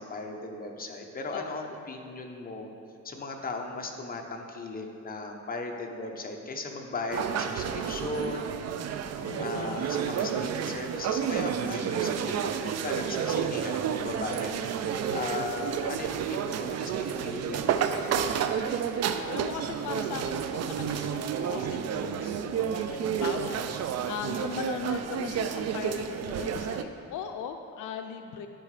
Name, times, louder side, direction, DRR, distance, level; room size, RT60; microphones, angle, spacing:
voice 1, 0.0-2.7 3.0-8.6 9.4-18.3 23.0-23.2, left 3 dB, 30° left, 2 dB, 0.9 m, -37 dB
voice 2, 1.3-1.8 9.2-9.8 15.0-15.3 19.3-23.7 24.1-28.5, left 8 dB, 80° left, 6 dB, 0.5 m, -39 dB
sound 1, 7.1-26.8, right 8 dB, 60° right, 0.5 m, -30 dB
12.0 x 4.9 x 3.3 m, 2.5 s
cardioid pair, 90°, 30 cm